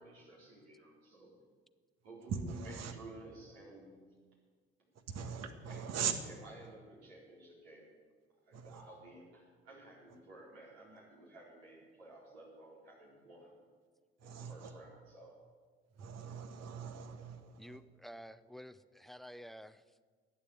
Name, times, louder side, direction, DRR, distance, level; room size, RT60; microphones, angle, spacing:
voice 1, 0.0-1.3 2.0-4.1 4.8-4.9 5.6-5.9 6.2-7.9 8.4-13.6 14.2-15.3, right 1 dB, 85° right, -4 dB, 4.2 m, -54 dB
voice 2, 2.3-2.9 5.1-6.2 8.5-8.8 14.2-14.7 16.0-17.8, right 7 dB, 60° right, 7 dB, 1.6 m, -40 dB
voice 3, 17.6-20.0, equal, ahead, 15 dB, 0.6 m, -51 dB
11.5 x 9.2 x 8.6 m, 1.5 s
hypercardioid pair, 55°, 30 cm